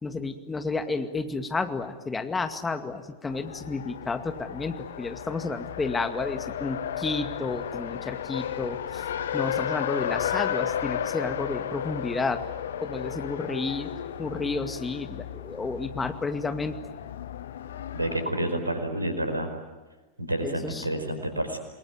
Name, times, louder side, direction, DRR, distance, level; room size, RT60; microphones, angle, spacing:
voice 1, 0.0-9.1 9.3-12.4 12.8-13.9 14.2-16.8 20.4-20.9, left 3 dB, 15° left, 8 dB, 2.1 m, -31 dB
Race car auto racing, 3.3-18.3, left 9 dB, 60° left, 1.2 m, -34 dB
voice 2, 17.9-19.5 20.2-21.6, right 1 dB, 80° right, 7 dB, 4.9 m, -29 dB
28.5 x 21.5 x 9.3 m, 1.2 s
figure-of-eight pair, 90°, 0 cm